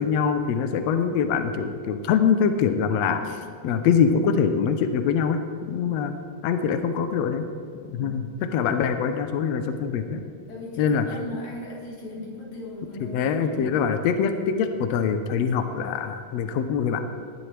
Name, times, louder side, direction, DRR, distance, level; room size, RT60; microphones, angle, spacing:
voice 1, 0.0-3.2 3.6-5.4 5.7-6.1 6.4-7.5 7.9-8.2 8.5-10.2 10.8-11.0 13.1-17.0, left 6 dB, 80° left, 7 dB, 1.5 m, -23 dB
voice 2, 7.9-8.2 10.5-13.7, left 1 dB, 55° left, -6 dB, 4.5 m, -38 dB
18.5 x 11.0 x 3.3 m, 2.3 s
omnidirectional pair, 3.9 m